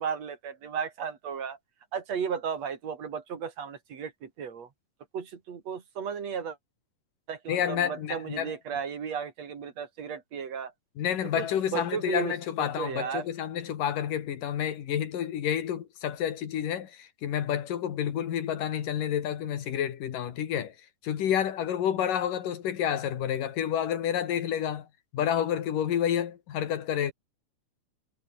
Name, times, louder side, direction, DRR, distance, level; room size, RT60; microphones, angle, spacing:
voice 1, 0.0-1.6 1.9-4.7 5.1-6.6 7.3-10.7 11.4-11.5 11.7-13.3, right 7 dB, 55° right, 3.8 m, -34 dB
voice 2, 7.5-8.6 11.0-20.8 21.0-24.9 25.1-27.1, left 9 dB, 85° left, 3.6 m, -29 dB
omnidirectional pair, 3.7 m